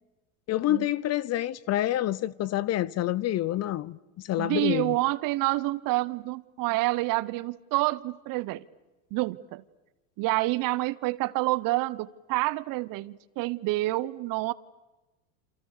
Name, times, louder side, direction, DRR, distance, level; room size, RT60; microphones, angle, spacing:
voice 1, 0.5-4.0 4.2-5.0, left 13 dB, 40° left, 0.8 m, -27 dB
voice 2, 4.4-8.6 9.1-9.6 10.2-14.5, right 20 dB, 50° right, 1.2 m, -28 dB
28.5 x 27.5 x 6.7 m
hypercardioid pair, 100°, 41 cm